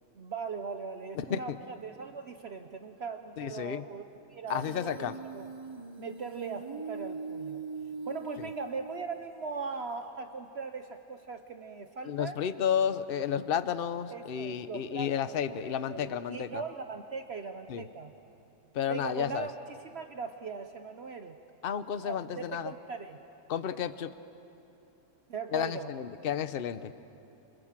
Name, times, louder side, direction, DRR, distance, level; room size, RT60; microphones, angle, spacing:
voice 1, 0.1-5.5 6.0-7.7 8.0-12.4 14.1-18.1 18.9-19.5 19.9-21.4 22.0-23.2 25.3-25.9, right 5 dB, 50° right, 6 dB, 1.1 m, -40 dB
voice 2, 1.1-1.6 3.4-3.8 4.5-5.1 12.0-16.6 17.7-17.9 18.7-19.5 21.6-22.7 23.5-24.1 25.5-26.9, left 8 dB, 50° left, 13 dB, 0.9 m, -32 dB
Human voice, 4.5-9.4, right 4 dB, 25° right, 0.7 m, -41 dB
27.5 x 27.5 x 7.5 m, 2.8 s
omnidirectional pair, 1.5 m